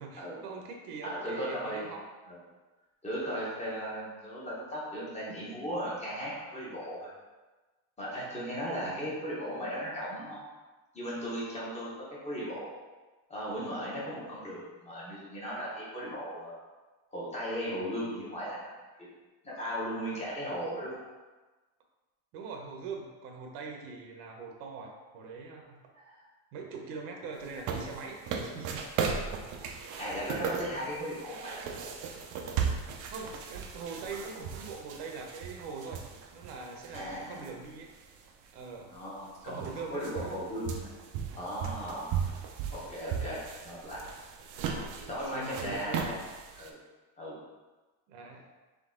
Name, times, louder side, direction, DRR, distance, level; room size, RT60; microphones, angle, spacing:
voice 1, 0.0-2.0 8.7-9.1 22.3-25.8 26.5-28.8 33.1-36.0 36.3-37.9 38.5-38.9 39.4-40.5 44.6-46.1 48.1-48.5, right 4 dB, 80° right, 2 dB, 0.9 m, -42 dB
voice 2, 1.0-1.8 2.3-2.4 3.0-7.1 8.0-10.4 10.9-11.9 12.2-12.7 13.3-16.5 17.1-19.1 19.4-21.0 25.9-26.2 29.4-29.6 30.0-31.6 36.9-37.5 38.9-40.9 41.4-42.1 42.7-44.0 44.9-46.2 46.6-46.8 47.2-47.4, equal, 15° left, -7 dB, 1.0 m, -37 dB
sound 1, 27.4-37.5 37.9-38.0 38.9-39.0 39.2-46.7, right 6 dB, 45° right, 0.5 m, -37 dB
3.8 x 3.3 x 3.7 m, 1.2 s
cardioid pair, 170°, 44 cm